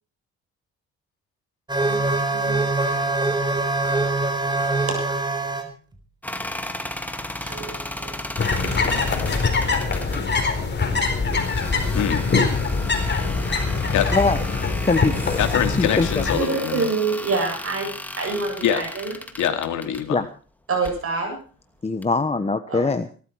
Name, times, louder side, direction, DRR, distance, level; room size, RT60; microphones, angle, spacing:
sound 1, 1.7-5.7 7.5-7.6 12.3-12.4, right 2 dB, 15° right, 4.1 m, -23 dB
voice 1, 1.8-2.7 4.9-5.0 7.4-8.2 11.0-11.3 13.2-13.8 16.4-19.1 20.7-21.4 22.7-22.9, right 4 dB, 50° right, 3 dB, 7.9 m, -28 dB
sound 2, 6.2-10.2 11.3-20.0 20.7-21.0 22.0-22.1, left 1 dB, 5° left, 2.3 m, -35 dB
sound 3, 8.4-16.4, left 4 dB, 35° left, 4.4 m, -23 dB
voice 2, 14.8-15.4 15.8-16.2 20.1-20.3 21.8-23.1, left 3 dB, 20° left, 9 dB, 1.1 m, -22 dB
voice 3, 15.4-16.9 18.6-18.8 19.4-20.2, left 9 dB, 80° left, 7 dB, 2.6 m, -24 dB
18.0 x 13.0 x 4.7 m, 0.39 s
cardioid pair, 90°, 30 cm